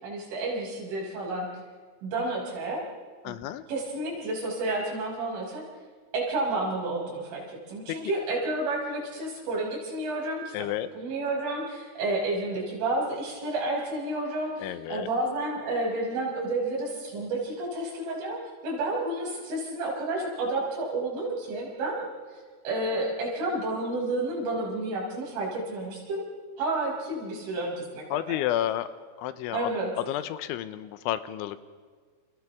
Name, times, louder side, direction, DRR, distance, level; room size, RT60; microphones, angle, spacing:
voice 1, 0.0-1.5 2.0-2.8 3.2-3.4 3.7-5.6 6.1-10.4 10.9-22.0 22.6-26.3 26.6-28.4 29.5-29.9, right 2 dB, 85° right, -3 dB, 8.0 m, -30 dB
voice 2, 3.2-3.7 7.9-8.0 10.5-10.9 14.6-15.1 28.1-28.9 29.2-29.7 30.0-31.6, left 12 dB, 85° left, 12 dB, 3.1 m, -31 dB
30.0 x 28.5 x 3.6 m, 1.5 s
omnidirectional pair, 5.5 m